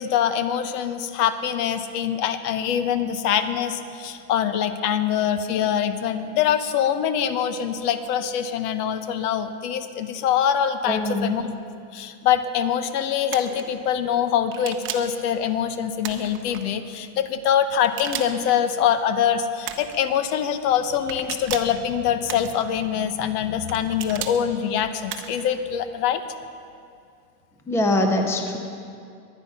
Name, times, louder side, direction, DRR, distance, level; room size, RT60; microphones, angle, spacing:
voice 1, 0.0-11.5 11.9-26.2, left 9 dB, 65° left, 10 dB, 1.1 m, -24 dB
voice 2, 10.9-11.3 13.5-13.6 27.7-28.6, left 1 dB, 5° left, 4 dB, 0.6 m, -23 dB
sound 1, 13.3-13.6 14.5-15.2 16.0-16.6 17.8-18.5 19.6-20.0 21.1-21.8 22.3-22.8 23.7-24.4 25.1-25.5, right 9 dB, 25° right, 0.8 m, -34 dB
23.0 x 9.3 x 5.7 m, 2.4 s
supercardioid pair, 155°, 50 cm